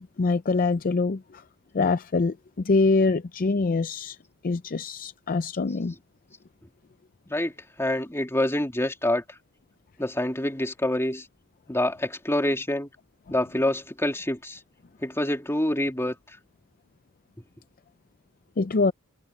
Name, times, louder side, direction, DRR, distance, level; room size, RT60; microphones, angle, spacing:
voice 1, 0.0-1.4 1.7-4.2 4.4-5.9 18.6-18.9, left 3 dB, 40° left, 0.5 m, -24 dB
voice 2, 7.8-9.2 10.0-11.2 11.7-12.9 13.3-14.6 15.0-16.1, left 1 dB, 10° left, 3.1 m, -26 dB
head